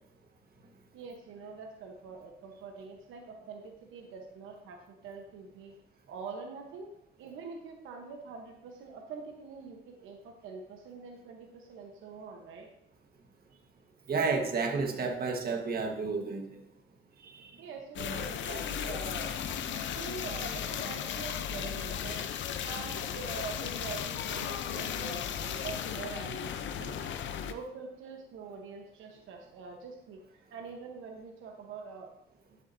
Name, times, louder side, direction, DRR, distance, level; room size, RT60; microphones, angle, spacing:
voice 1, 0.9-4.8 5.0-5.7 6.1-6.9 7.2-12.7 17.6-19.4 19.7-22.2 22.6-27.1 27.4-32.1, right 5 dB, 85° right, 2 dB, 1.1 m, -44 dB
voice 2, 14.1-16.6 17.2-17.5, right 4 dB, 50° right, 3 dB, 1.5 m, -31 dB
sound 1, 18.0-27.5, left 8 dB, 70° left, 0.7 m, -36 dB
11.0 x 7.4 x 2.7 m, 0.78 s
cardioid pair, 90°, 20 cm